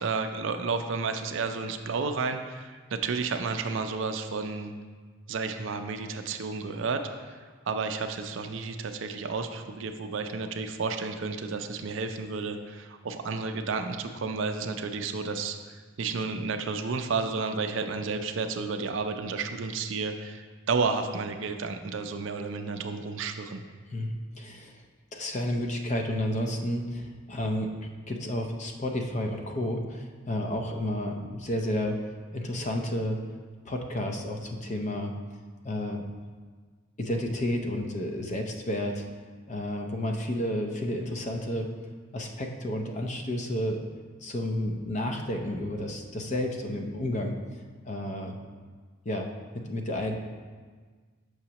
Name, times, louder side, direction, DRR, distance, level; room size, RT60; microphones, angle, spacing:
voice 1, 0.0-4.7 5.3-7.4 7.7-15.6 16.0-23.6, right 4 dB, 65° right, 7 dB, 0.4 m, -31 dB
voice 2, 23.9-24.8 25.1-27.7 28.1-32.0 32.3-33.2 33.6-35.1 35.6-36.0 37.0-39.0 39.5-41.7 42.1-43.9 44.2-47.3 47.8-48.4 49.1-49.3 49.5-50.2, left 1 dB, 35° left, 3 dB, 0.5 m, -31 dB
6.3 x 5.9 x 2.9 m, 1.5 s
head